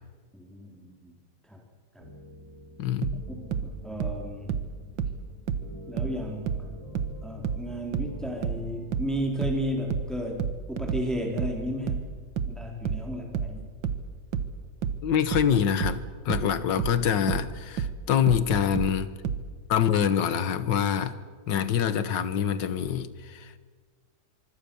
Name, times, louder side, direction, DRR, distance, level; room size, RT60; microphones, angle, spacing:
voice 1, 0.3-1.1 1.4-1.6 1.9-2.1 3.4-4.6 5.9-12.1 12.5-13.7, equal, ahead, 1 dB, 3.7 m, -34 dB
sound 1, 2.0-9.1, left 1 dB, 45° right, 7.4 m, -47 dB
voice 2, 2.8-3.3 15.0-19.1 19.7-21.2 21.5-23.6, left 8 dB, 75° left, 13 dB, 1.9 m, -25 dB
sound 2, 3.0-6.2 6.5-19.5, right 7 dB, 80° right, 2.0 m, -31 dB
25.0 x 25.0 x 7.1 m, 1.5 s
omnidirectional pair, 2.0 m